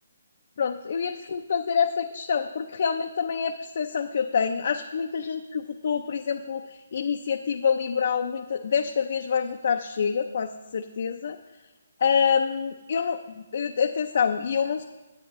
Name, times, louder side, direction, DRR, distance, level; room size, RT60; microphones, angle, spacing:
voice 1, 0.6-11.4 12.0-14.8, left 6 dB, 55° left, 5 dB, 0.5 m, -26 dB
9.4 x 8.1 x 3.0 m, 1.1 s
hypercardioid pair, 150°, 0 cm